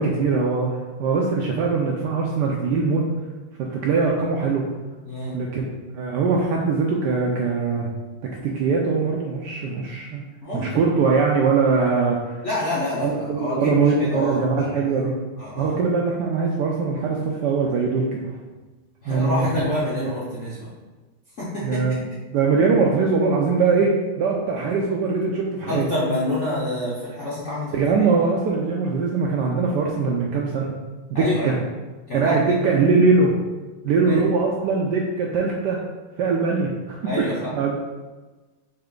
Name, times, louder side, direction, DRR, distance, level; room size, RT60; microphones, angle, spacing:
voice 1, 0.0-3.0 3.6-4.7 5.3-5.6 5.9-7.9 8.4-10.2 10.5-12.4 13.0-15.1 15.5-18.4 19.1-19.5 20.0-20.1 21.6-22.0 22.3-23.9 24.2-25.9 27.7-30.7 31.1-31.6 32.1-33.3 33.8-35.8 36.2-37.0 37.5-37.8, right 4 dB, 85° right, -1 dB, 0.9 m, -21 dB
voice 2, 5.0-5.4 10.4-11.0 12.4-13.8 14.1-14.4 14.7-15.1 15.4-15.8 19.0-20.7 21.4-21.8 25.7-27.7 28.0-28.1 31.1-31.6 32.1-32.5 34.0-34.2 37.0-37.5, left 1 dB, 65° left, -7 dB, 0.7 m, -27 dB
4.3 x 3.4 x 3.7 m, 1.2 s
omnidirectional pair, 2.4 m